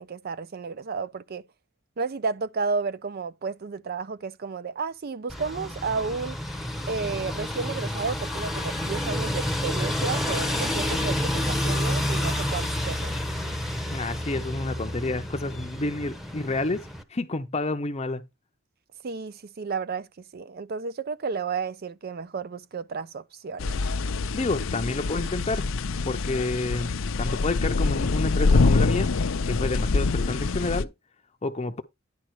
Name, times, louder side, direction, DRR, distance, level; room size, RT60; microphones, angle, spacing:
voice 1, 0.0-1.4 2.0-6.4 6.9-13.1 19.0-20.1 20.3-23.8, right 4 dB, 50° right, 0.5 m, -32 dB
sound 1, 5.3-17.0, left 1 dB, ahead, 0.9 m, -29 dB
voice 2, 13.9-18.2 24.3-25.7 26.0-26.9 27.2-30.9 31.4-31.8, left 2 dB, 30° left, 0.7 m, -29 dB
sound 2, 23.6-30.8, left 3 dB, 70° left, 0.6 m, -25 dB
10.5 x 5.0 x 4.7 m
head